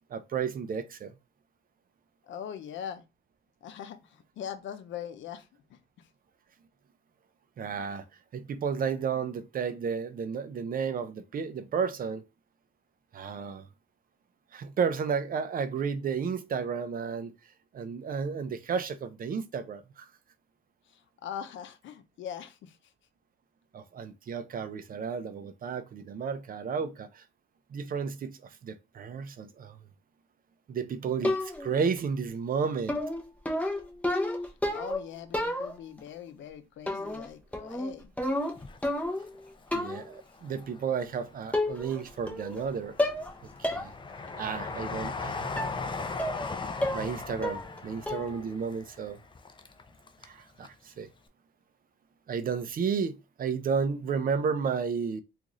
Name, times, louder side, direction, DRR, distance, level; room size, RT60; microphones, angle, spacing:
voice 1, 0.1-1.1 7.6-8.0 8.3-12.2 13.1-13.7 14.5-17.3 17.7-20.1 23.7-27.2 27.7-29.8 30.7-33.0 39.7-43.0 43.6-43.9 44.4-45.7 46.9-49.2 50.2-51.1 52.3-55.2, right 6 dB, 45° right, 0.6 m, -32 dB
voice 2, 2.3-3.0 3.6-5.8 20.9-22.8 34.4-38.1, left 9 dB, 70° left, 0.6 m, -41 dB
sound 1, 31.2-31.8 32.9-35.0 35.3-36.0 36.9-37.3 37.5-39.3 39.7-40.1 41.0-41.1 41.5-42.0 42.3-42.7 43.0-43.3 43.6-43.9 44.3-44.4 45.6-45.8 46.2-46.5 46.8-47.1 47.4-47.8 48.1-48.4, left 1 dB, 5° left, 0.8 m, -30 dB
Train, 38.4-39.7 40.1-41.1 41.6-50.4 50.6-50.7, left 4 dB, 25° left, 0.5 m, -39 dB
3.7 x 2.5 x 3.0 m
cardioid pair, 90°, 20 cm